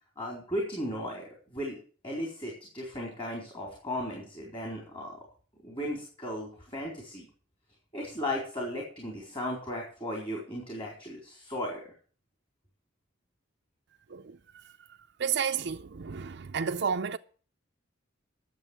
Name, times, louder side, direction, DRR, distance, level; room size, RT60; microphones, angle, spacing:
voice 1, 0.2-1.8 2.0-5.2 5.6-7.3 7.9-11.9, left 1 dB, 25° left, 4.1 m, -36 dB
voice 2, 15.2-17.2, right 6 dB, 60° right, 0.5 m, -31 dB
11.0 x 7.3 x 8.9 m
head